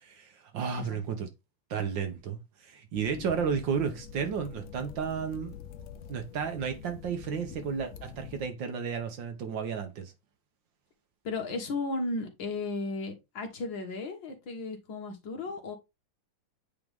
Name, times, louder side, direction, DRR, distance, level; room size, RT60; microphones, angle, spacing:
voice 1, 0.0-1.3 1.7-5.5 6.1-10.1, right 6 dB, 65° right, 1.6 m, -33 dB
sound 1, 2.9-8.5, left 7 dB, 90° left, 0.7 m, -46 dB
voice 2, 11.2-15.8, left 3 dB, 60° left, 2.0 m, -35 dB
8.8 x 3.6 x 3.4 m
omnidirectional pair, 2.4 m